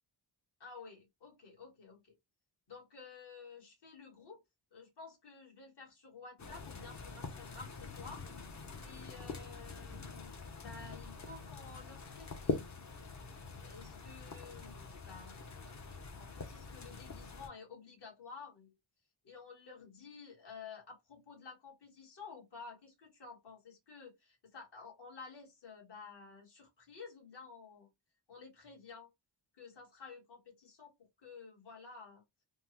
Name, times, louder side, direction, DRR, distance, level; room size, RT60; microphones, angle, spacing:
voice 1, 0.6-2.1 2.7-4.4 4.7-8.3 8.8-12.7 13.6-15.4 16.1-18.8 19.2-27.9 28.3-29.1 29.5-30.9 31.2-32.2, left 5 dB, 55° left, 1.4 m, -52 dB
sound 1, 6.4-17.5, left 4 dB, 35° left, 0.6 m, -44 dB
3.5 x 2.0 x 2.9 m
wide cardioid pair, 165°, 49 cm